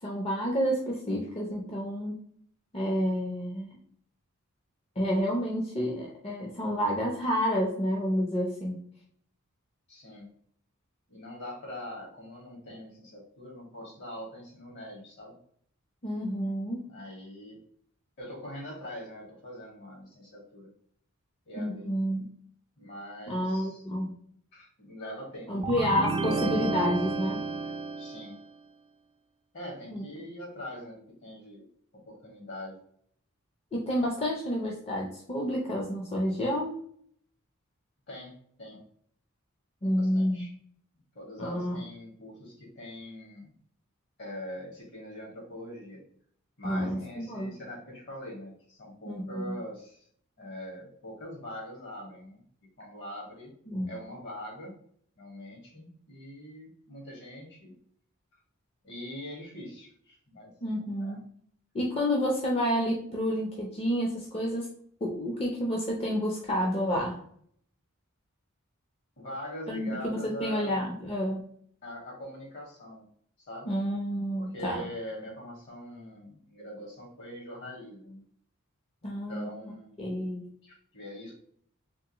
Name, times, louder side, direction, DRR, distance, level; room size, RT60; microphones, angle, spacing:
voice 1, 0.0-2.2 2.7-3.7 5.0-8.8 16.0-16.8 21.5-22.3 23.3-24.1 25.5-27.4 29.9-30.0 33.7-36.8 39.8-40.5 41.4-41.8 46.6-47.6 49.0-49.6 53.7-53.9 60.6-61.2 61.7-64.7 65.0-67.2 69.7-71.5 73.7-74.9 79.0-79.5 80.0-80.5, equal, 30° left, -1 dB, 0.5 m, -29 dB
voice 2, 9.9-10.3 11.1-15.4 16.9-17.6 18.2-20.7 21.4-21.9 22.8-23.8 24.5-25.7 28.0-28.4 29.5-31.6 31.9-32.8 38.1-38.8 39.8-40.5 41.1-43.5 44.2-46.0 46.6-50.0 50.4-52.4 52.8-53.5 53.9-54.7 55.2-57.7 58.8-60.5 61.0-61.2 69.2-70.8 71.8-73.1 73.4-73.7 74.4-78.2 79.0-80.1 80.6-81.3, equal, 60° left, -1 dB, 1.6 m, -43 dB
sound 1, 25.6-28.4, right 3 dB, 25° right, 0.3 m, -31 dB
3.5 x 3.1 x 2.9 m, 0.63 s
head